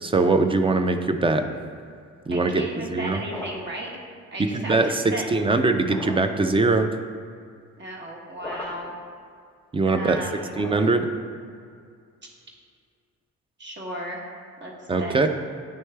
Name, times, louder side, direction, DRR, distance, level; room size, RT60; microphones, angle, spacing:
voice 1, 0.0-1.5 2.3-2.6 2.9-3.2 4.4-5.0 5.3-6.9 9.7-10.2 10.6-11.1 14.9-15.3, right 3 dB, 20° right, 7 dB, 0.3 m, -21 dB
voice 2, 2.3-3.9 4.3-5.3 7.8-9.0 9.9-10.6 13.6-14.2 14.6-15.2, right 1 dB, 35° right, -1 dB, 1.2 m, -35 dB
sound 1, 3.2-3.8 5.8-6.4 8.4-9.0 10.5-11.2, left 1 dB, 5° left, 1.0 m, -38 dB
9.0 x 3.1 x 3.3 m, 2.2 s
cardioid pair, 90°, 30 cm